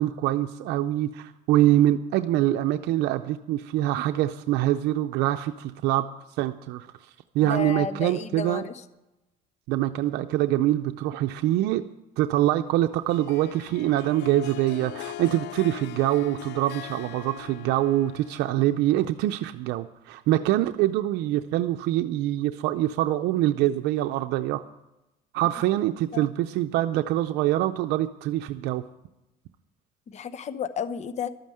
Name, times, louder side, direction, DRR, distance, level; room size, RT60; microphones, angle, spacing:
voice 1, 0.0-6.1 6.4-6.9 7.3-8.6 9.7-11.8 12.2-24.6 25.3-28.8, right 14 dB, 90° right, 7 dB, 0.5 m, -24 dB
voice 2, 7.5-8.7 26.1-26.2 30.1-31.3, left 6 dB, 40° left, 12 dB, 0.8 m, -32 dB
Harp, 13.1-18.9, left 15 dB, 80° left, 0.5 m, -41 dB
12.5 x 9.1 x 7.8 m, 0.96 s
cardioid pair, 110°, 17 cm